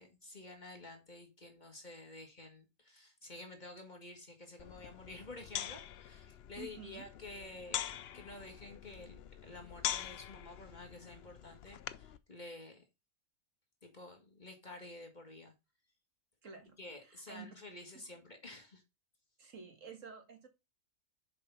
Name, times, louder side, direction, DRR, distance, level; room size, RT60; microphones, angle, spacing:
voice 1, 0.0-7.9 8.1-12.8 13.8-15.5 16.8-18.8, left 2 dB, 30° left, 1.7 m, -51 dB
sound 1, 4.6-12.2, left 10 dB, 65° left, 0.6 m, -44 dB
voice 2, 6.6-7.1 16.4-17.5 17.9-18.1 19.4-20.5, right 5 dB, 60° right, 1.8 m, -51 dB
6.8 x 5.3 x 5.5 m
omnidirectional pair, 1.5 m